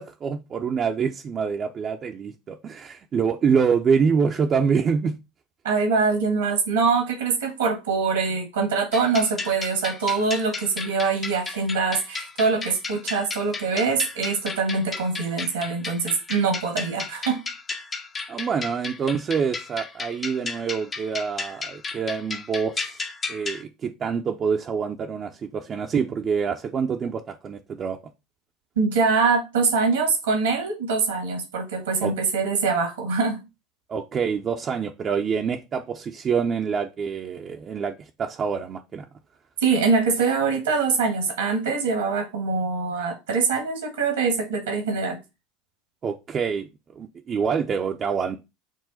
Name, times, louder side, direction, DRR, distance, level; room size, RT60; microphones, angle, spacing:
voice 1, 0.0-5.2 18.3-23.0 23.3-28.0 32.0-32.1 33.9-37.9 38.2-39.0 46.0-46.7 47.0-48.4, right 6 dB, 35° right, 0.5 m, -26 dB
voice 2, 5.6-17.4 28.8-33.4 39.6-45.2, right 4 dB, 85° right, 1.4 m, -24 dB
sound 1, 8.9-23.6, left 4 dB, 30° left, 0.7 m, -34 dB
6.3 x 2.1 x 4.0 m
hypercardioid pair, 80°, 0 cm